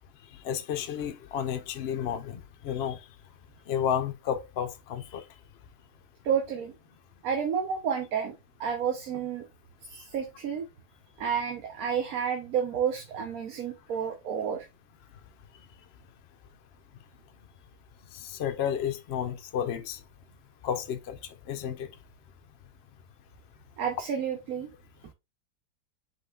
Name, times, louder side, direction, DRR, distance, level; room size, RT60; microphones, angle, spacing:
voice 1, 0.4-3.0 3.7-5.2 18.1-20.0 20.6-21.2 21.5-21.9, left 9 dB, 65° left, 0.6 m, -31 dB
voice 2, 6.2-6.7 7.2-8.3 8.6-9.5 9.8-10.7 11.2-14.7 23.8-24.7, right 7 dB, 65° right, 1.2 m, -30 dB
5.4 x 3.8 x 2.3 m
omnidirectional pair, 1.8 m